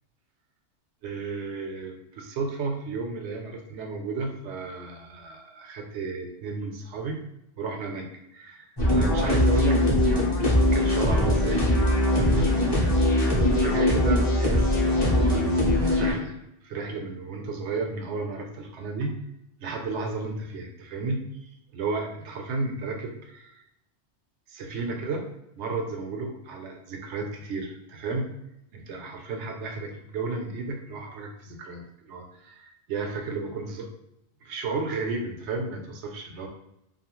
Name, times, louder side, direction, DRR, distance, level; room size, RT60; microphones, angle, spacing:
voice 1, 1.0-7.2 7.6-10.4 10.7-11.6 11.9-12.8 13.3-16.3 16.6-19.1 19.6-23.6 24.5-25.3 25.6-28.3 28.7-33.9 34.4-36.5, right 3 dB, 75° right, 3 dB, 0.9 m, -33 dB
sound 1, 8.8-16.1, left 1 dB, 25° left, 0.7 m, -21 dB
2.7 x 2.3 x 3.0 m, 0.82 s
omnidirectional pair, 1.2 m